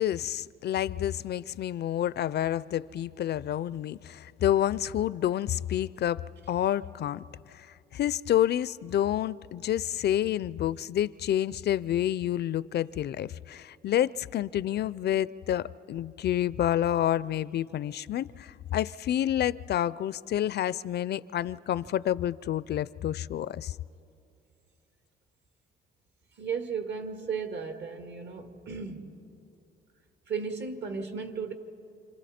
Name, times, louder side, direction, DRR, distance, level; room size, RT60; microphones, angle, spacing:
voice 1, 0.0-6.2 6.5-23.8, left 11 dB, 55° left, 19 dB, 0.4 m, -29 dB
voice 2, 26.4-29.2 30.3-31.5, right 5 dB, 60° right, 6 dB, 2.0 m, -35 dB
29.0 x 26.5 x 4.3 m, 2.7 s
cardioid pair, 90°, 20 cm